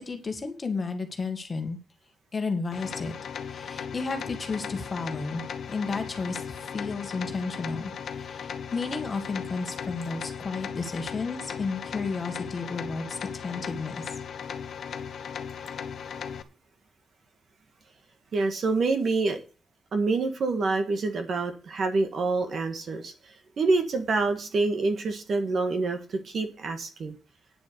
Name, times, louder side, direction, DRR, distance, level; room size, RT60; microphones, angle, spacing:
voice 1, 0.0-1.8 2.3-3.2 3.5-5.4 5.7-14.2, left 4 dB, 25° left, 1.9 m, -32 dB
sound 1, 2.7-16.4, left 7 dB, 55° left, 1.1 m, -37 dB
voice 2, 18.3-19.4 19.9-27.2, right 3 dB, 45° right, 1.8 m, -27 dB
9.8 x 7.1 x 6.8 m
wide cardioid pair, 170°, 0 cm